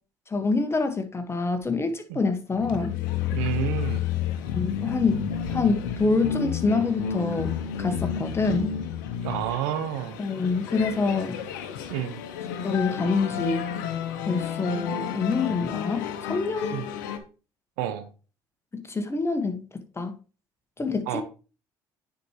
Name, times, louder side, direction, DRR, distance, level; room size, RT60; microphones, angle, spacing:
voice 1, 0.3-2.9 4.5-7.5 7.8-8.7 10.2-11.4 12.6-13.6 14.2-16.8 18.7-19.6 20.0-20.1 20.8-21.2, left 4 dB, 25° left, 1.4 m, -26 dB
sound 1, 2.5-17.2, left 8 dB, 90° left, 0.7 m, -31 dB
voice 2, 3.3-4.0 9.2-10.2 11.9-12.2 16.7-16.8 17.8-18.1 21.1-21.2, right 10 dB, 85° right, 0.7 m, -29 dB
9.4 x 4.4 x 3.0 m
hypercardioid pair, 60°, 10 cm